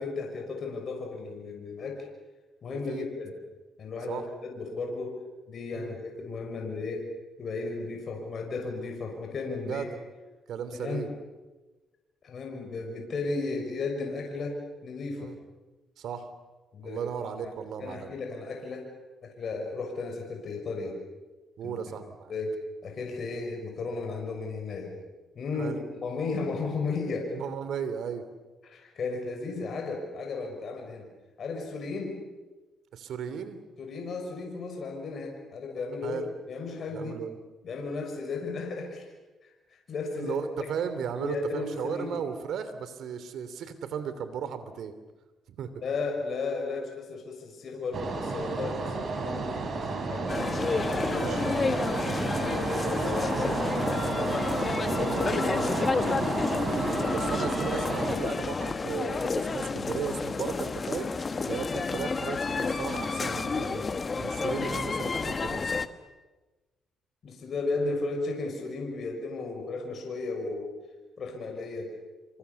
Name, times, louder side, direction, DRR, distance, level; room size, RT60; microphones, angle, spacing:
voice 1, 0.0-2.1 2.6-3.3 3.8-5.2 5.5-7.1 7.4-9.9 10.7-11.0 12.2-15.3 16.7-17.1 17.4-17.5 17.8-18.9 19.2-21.0 21.6-21.8 22.3-25.0 25.3-27.4 28.6-31.1 31.4-32.2 33.8-36.2 36.5-37.2 37.6-39.0 39.9-40.4 41.2-42.2 45.8-50.4 51.0-51.3 51.7-51.9 52.4-54.5 54.7-55.9 67.2-70.8 71.2-71.9, left 3 dB, 55° left, 2 dB, 6.2 m, -34 dB
voice 2, 2.7-3.1 4.1-4.2 5.7-5.9 9.7-9.9 10.5-11.1 15.2-15.4 16.0-16.2 16.8-18.1 21.6-22.3 25.6-25.8 27.3-28.2 32.9-33.6 36.0-36.3 36.9-37.3 40.2-44.9 45.5-45.7 51.1-51.4 52.4-52.6 55.0-55.2 56.6-61.1 61.4-63.8 64.2-65.7, right 7 dB, 70° right, 11 dB, 3.0 m, -36 dB
sound 1, 47.9-58.2, right 4 dB, 50° right, 5.8 m, -31 dB
sound 2, 50.3-65.9, left 4 dB, 35° left, 1.4 m, -30 dB
27.5 x 25.0 x 7.1 m, 1.2 s
cardioid pair, 90°, 0 cm